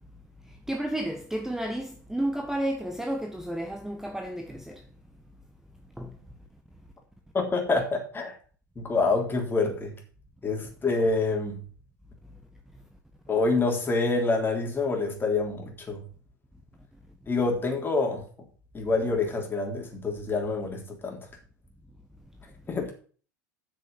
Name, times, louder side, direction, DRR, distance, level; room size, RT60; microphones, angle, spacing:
voice 1, 0.7-4.8 6.0-6.1, right 1 dB, 5° right, 1.3 m, -31 dB
voice 2, 7.3-8.3 8.8-9.9 10.4-11.6 13.3-16.0 17.3-18.2 18.7-21.2 22.7-22.9, left 3 dB, 20° left, 3.5 m, -27 dB
8.3 x 6.5 x 7.4 m
figure-of-eight pair, 80°, 10 cm